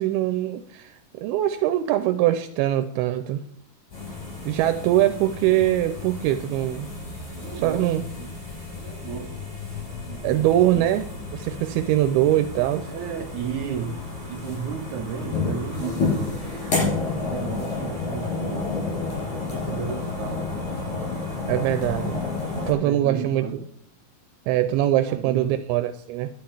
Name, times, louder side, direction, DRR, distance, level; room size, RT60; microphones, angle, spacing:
voice 1, 0.0-3.4 4.4-6.9 7.6-8.0 10.2-12.9 21.5-22.2 22.7-23.5 24.5-26.3, right 13 dB, 90° right, 9 dB, 2.6 m, -22 dB
sound 1, 3.9-22.7, left 3 dB, 50° left, 8.0 m, -31 dB
voice 2, 7.3-7.9 8.2-8.4 8.8-9.4 10.0-10.5 10.7-10.9 12.9-16.4 16.9-18.7 19.5-20.7 22.6-23.6 25.0-25.6, right 7 dB, 75° right, 5 dB, 1.9 m, -34 dB
12.0 x 5.9 x 8.6 m, 0.70 s
omnidirectional pair, 4.4 m